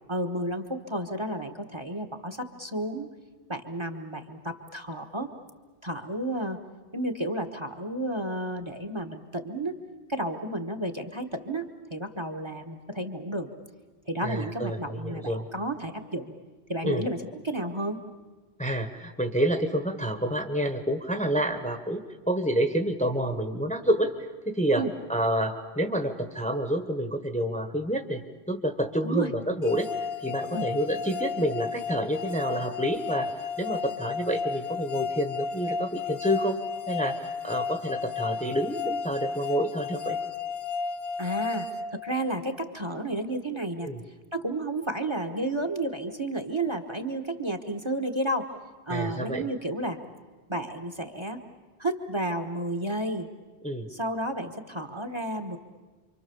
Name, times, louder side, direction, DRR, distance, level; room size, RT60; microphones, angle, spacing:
voice 1, 0.1-3.1 3.5-5.3 5.8-6.6 6.9-9.7 10.1-13.5 14.1-16.3 16.7-18.0 24.7-24.9 29.0-29.3 30.5-30.7 41.2-41.7 41.9-43.9 44.3-48.5 48.9-50.0 50.5-51.4 51.8-53.3 53.9-55.6, right 1 dB, 25° right, 7 dB, 1.5 m, -32 dB
voice 2, 14.2-15.5 16.8-17.0 18.6-33.3 33.6-36.6 36.9-40.2 43.8-44.0 48.9-49.5 53.6-53.9, equal, 5° left, 6 dB, 1.3 m, -28 dB
sound 1, 29.7-42.6, left 5 dB, 65° left, 1.4 m, -33 dB
28.5 x 24.5 x 7.1 m, 1.3 s
omnidirectional pair, 1.1 m